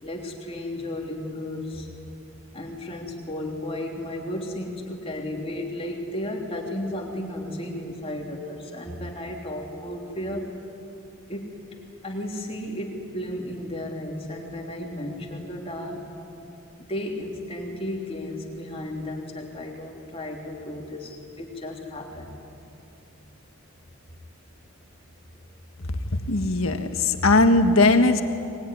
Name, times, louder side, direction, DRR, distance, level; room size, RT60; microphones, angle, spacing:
voice 1, 0.0-1.9 2.5-10.4 11.3-11.5 12.0-16.0 16.8-22.4, left 1 dB, 25° left, 0 dB, 3.2 m, -34 dB
voice 2, 26.2-28.2, left 2 dB, 70° left, 7 dB, 1.6 m, -19 dB
23.0 x 22.0 x 10.0 m, 2.8 s
head